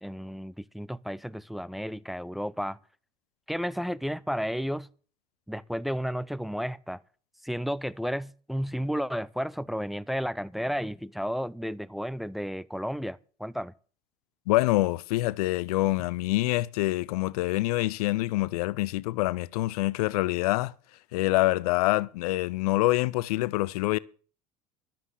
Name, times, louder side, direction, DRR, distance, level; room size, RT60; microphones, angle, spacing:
voice 1, 0.0-2.8 3.5-4.9 5.5-7.0 7.4-13.7, equal, ahead, 0.6 m, -32 dB
voice 2, 14.5-20.7 21.1-24.0, left 18 dB, 70° left, 0.5 m, -26 dB
12.0 x 8.0 x 7.5 m
hypercardioid pair, 70°, 20 cm